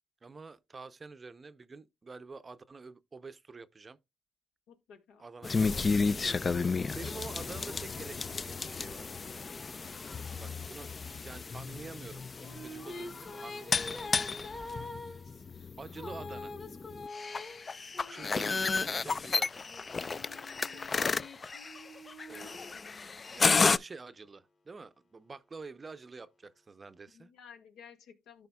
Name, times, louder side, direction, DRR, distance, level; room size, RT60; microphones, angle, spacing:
voice 1, 0.2-4.0 5.2-9.1 10.4-10.9 11.2-12.2 12.6-14.2 15.8-16.5 18.1-19.6 20.7-21.1 22.3-22.7 23.3-27.3, right 4 dB, 30° right, 0.6 m, -48 dB
voice 2, 4.7-5.3 18.1-18.2 27.1-28.5, left 7 dB, 85° left, 1.7 m, -55 dB
sound 1, 5.4-23.8, left 4 dB, 35° left, 0.3 m, -32 dB
sound 2, 12.1-19.0 19.7-23.4, left 2 dB, 50° left, 3.3 m, -46 dB
13.5 x 5.0 x 2.2 m
cardioid pair, 90°, 0 cm